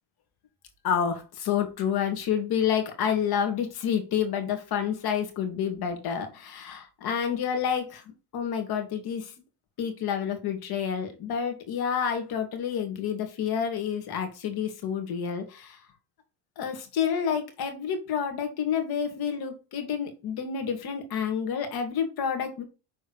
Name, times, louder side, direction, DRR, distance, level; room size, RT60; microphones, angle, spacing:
voice 1, 0.8-8.0 8.3-9.3 9.8-15.8 16.6-22.6, left 8 dB, 55° left, 5 dB, 2.7 m, -29 dB
6.9 x 4.5 x 5.0 m, 0.30 s
cardioid pair, 120°, 43 cm